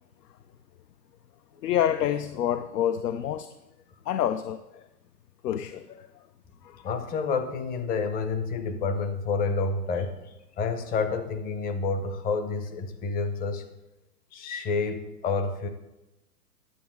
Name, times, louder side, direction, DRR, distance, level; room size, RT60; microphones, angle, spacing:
voice 1, 1.6-3.5 4.1-4.8 5.4-6.1 6.6-6.9, left 10 dB, 75° left, 11 dB, 0.6 m, -28 dB
voice 2, 6.8-13.7 14.3-15.7, left 4 dB, 20° left, 9 dB, 0.6 m, -29 dB
10.0 x 7.1 x 4.5 m, 0.98 s
hypercardioid pair, 125°, 48 cm